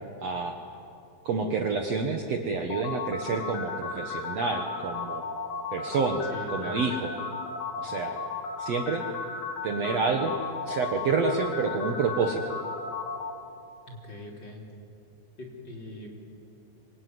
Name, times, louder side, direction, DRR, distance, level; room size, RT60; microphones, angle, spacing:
voice 1, 0.2-0.6 1.3-5.2 5.7-7.1 7.8-8.2 8.6-9.0 9.6-10.4 10.7-12.4, right 4 dB, 55° right, 3 dB, 2.1 m, -28 dB
sound 1, 2.7-13.3, left 4 dB, 80° left, 4.1 m, -34 dB
voice 2, 6.3-6.9 13.9-14.6 15.4-16.1, left 2 dB, 30° left, -1 dB, 4.1 m, -41 dB
26.0 x 23.5 x 9.5 m, 2.6 s
omnidirectional pair, 4.2 m